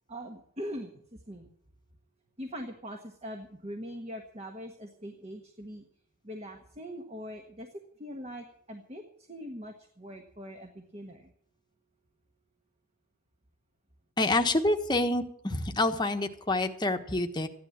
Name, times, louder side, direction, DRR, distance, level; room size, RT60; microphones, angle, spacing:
voice 1, 0.1-1.5 2.4-5.8 6.2-7.7 8.0-11.3, equal, 30° right, 4 dB, 1.4 m, -42 dB
voice 2, 14.2-17.5, left 2 dB, 20° left, 5 dB, 1.2 m, -27 dB
15.0 x 11.0 x 7.3 m, 0.65 s
head